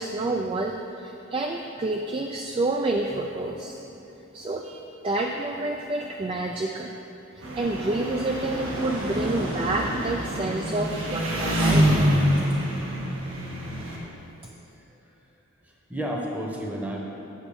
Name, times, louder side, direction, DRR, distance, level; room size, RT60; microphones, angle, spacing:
voice 1, 0.0-3.8 4.3-6.9 7.6-11.9, right 2 dB, 25° right, 1 dB, 0.3 m, -28 dB
Engine, 7.4-14.0, equal, 85° right, 1.3 m, -26 dB
voice 2, 14.4-15.1 15.6-17.1, equal, 10° right, -2 dB, 0.9 m, -33 dB
8.7 x 5.9 x 5.2 m, 2.9 s
head